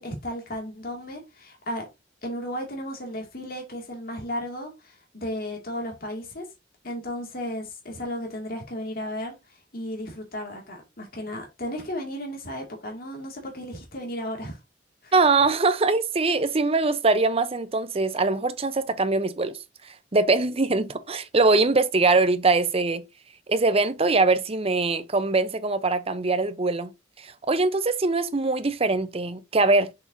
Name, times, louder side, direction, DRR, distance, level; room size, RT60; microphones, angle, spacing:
voice 1, 0.0-1.9 2.2-6.5 6.8-14.6 15.0-15.1, equal, 50° left, 2.3 m, -34 dB
voice 2, 15.1-19.6 19.8-23.0 23.5-26.9 27.2-29.9, right 3 dB, 30° right, 0.7 m, -22 dB
6.7 x 6.0 x 2.7 m
head